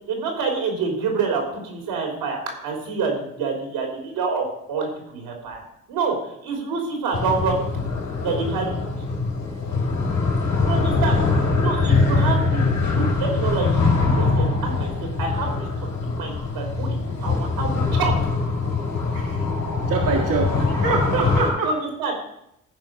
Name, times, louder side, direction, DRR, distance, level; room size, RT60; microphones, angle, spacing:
voice 1, 0.1-5.6 5.9-6.2 6.4-7.6 8.2-8.9 10.7-11.2 11.6-14.9 15.2-15.7 16.0-18.1 21.6-22.1, right 4 dB, 85° right, 2 dB, 3.4 m, -27 dB
sound 1, 7.1-21.5, left 3 dB, 60° left, 3.8 m, -22 dB
voice 2, 19.1-19.4 19.9-21.8, right 4 dB, 60° right, 0 dB, 1.7 m, -24 dB
15.0 x 5.0 x 6.2 m, 0.79 s
supercardioid pair, 60°, 37 cm